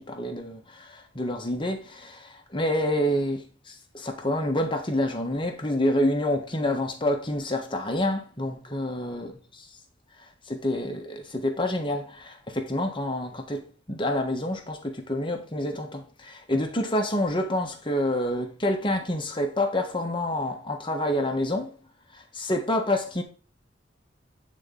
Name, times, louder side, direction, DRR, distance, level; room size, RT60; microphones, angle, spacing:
voice 1, 0.1-9.3 10.5-13.6 13.9-21.7 22.3-23.2, left 1 dB, 25° left, 1.3 m, -28 dB
8.9 x 4.3 x 3.8 m
head